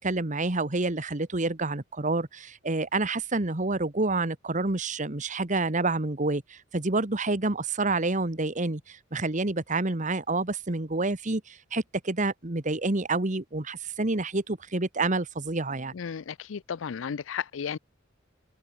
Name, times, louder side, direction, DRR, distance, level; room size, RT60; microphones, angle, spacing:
voice 1, 0.0-15.9, right 2 dB, 40° right, 1.5 m, -28 dB
voice 2, 15.9-17.8, left 7 dB, 80° left, 0.5 m, -34 dB
head